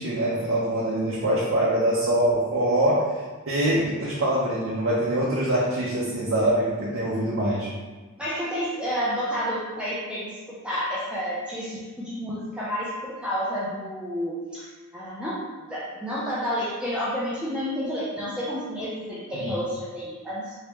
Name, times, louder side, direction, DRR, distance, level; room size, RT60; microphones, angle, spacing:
voice 1, 0.0-3.1 3.5-7.7 19.3-19.5, right 1 dB, 65° right, -6 dB, 0.6 m, -24 dB
voice 2, 8.2-10.3 10.6-14.7 14.9-20.5, equal, 5° right, -9 dB, 0.5 m, -30 dB
3.5 x 2.8 x 3.0 m, 1.3 s
head